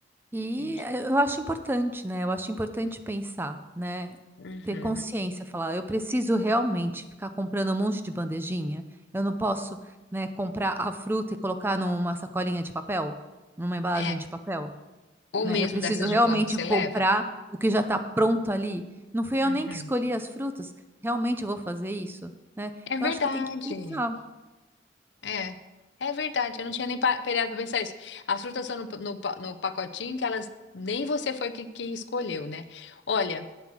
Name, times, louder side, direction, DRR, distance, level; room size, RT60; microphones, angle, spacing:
voice 1, 0.3-4.2 4.6-8.8 9.1-9.7 10.1-13.1 13.6-14.7 15.4-17.2 17.6-18.8 19.1-20.7 21.0-22.3 22.6-22.7 23.0-24.2, right 1 dB, 10° right, 9 dB, 0.5 m, -28 dB
voice 2, 4.4-5.1 13.9-14.2 15.3-16.9 19.4-19.9 22.9-24.0 25.2-25.6 26.0-30.5 30.7-33.5, left 5 dB, 85° left, 11 dB, 0.6 m, -31 dB
9.1 x 7.3 x 6.1 m, 1.1 s
head